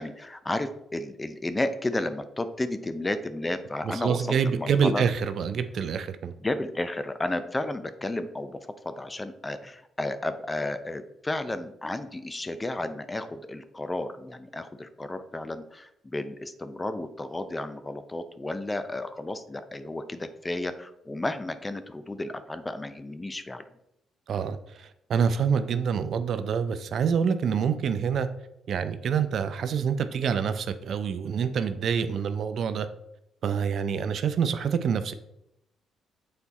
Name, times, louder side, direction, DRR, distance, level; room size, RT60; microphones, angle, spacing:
voice 1, 0.0-5.1 6.4-23.6, left 2 dB, 20° left, 11 dB, 0.6 m, -32 dB
voice 2, 3.8-6.3 24.3-28.3 28.7-32.9 33.4-35.1, right 7 dB, 60° right, 10 dB, 0.5 m, -26 dB
6.8 x 4.2 x 4.1 m, 0.81 s
cardioid pair, 90°, 0 cm